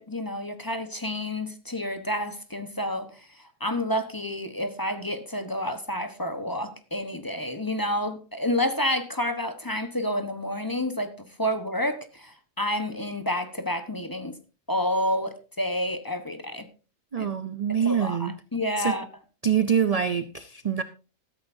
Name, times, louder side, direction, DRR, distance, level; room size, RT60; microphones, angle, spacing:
voice 1, 0.0-14.3 14.7-16.7 17.2-17.3 17.8-19.1, left 1 dB, 15° left, 1.0 m, -29 dB
voice 2, 17.1-18.3 18.8-19.0 19.4-20.8, right 7 dB, 40° right, 0.5 m, -25 dB
14.0 x 13.5 x 2.7 m
omnidirectional pair, 1.4 m